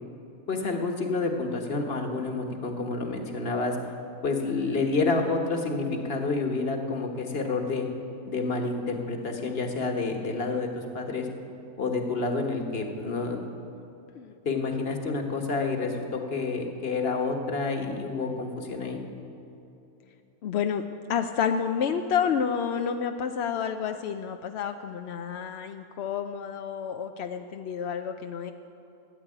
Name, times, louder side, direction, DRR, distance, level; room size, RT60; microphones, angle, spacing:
voice 1, 0.5-3.8 4.2-7.9 8.3-10.7 10.9-11.3 11.8-13.4 14.4-19.0, left 3 dB, 45° left, 3 dB, 1.5 m, -29 dB
voice 2, 20.4-20.8 21.1-28.5, left 7 dB, 65° left, 7 dB, 0.7 m, -29 dB
15.0 x 8.2 x 9.9 m, 2.9 s
omnidirectional pair, 1.5 m